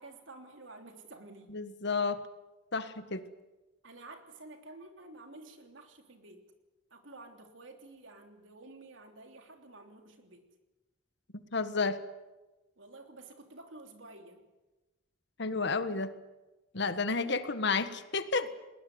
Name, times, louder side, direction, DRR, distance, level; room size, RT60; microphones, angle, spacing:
voice 1, 0.0-1.6 3.8-6.4 6.9-10.4 12.8-14.4 16.9-17.5 18.4-18.5, right 2 dB, 80° right, 5 dB, 3.3 m, -51 dB
voice 2, 1.5-2.3 2.7-3.2 11.5-12.0 15.4-16.1 16.7-18.5, left 4 dB, 65° left, 11 dB, 1.5 m, -31 dB
20.0 x 20.0 x 9.7 m, 1.1 s
head